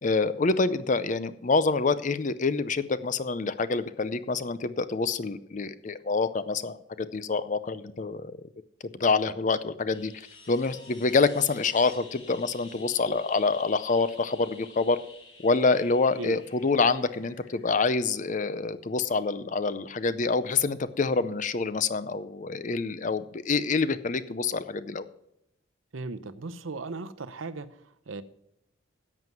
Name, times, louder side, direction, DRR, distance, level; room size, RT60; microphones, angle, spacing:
voice 1, 0.0-6.8 7.1-8.3 9.0-10.1 10.5-15.0 15.4-25.0, left 4 dB, 40° left, 14 dB, 0.5 m, -26 dB
sound 1, 9.9-18.6 20.9-21.0, left 3 dB, 90° left, 5.2 m, -51 dB
voice 2, 25.9-28.2, right 3 dB, 85° right, 14 dB, 0.7 m, -37 dB
11.0 x 7.8 x 5.9 m, 0.80 s
head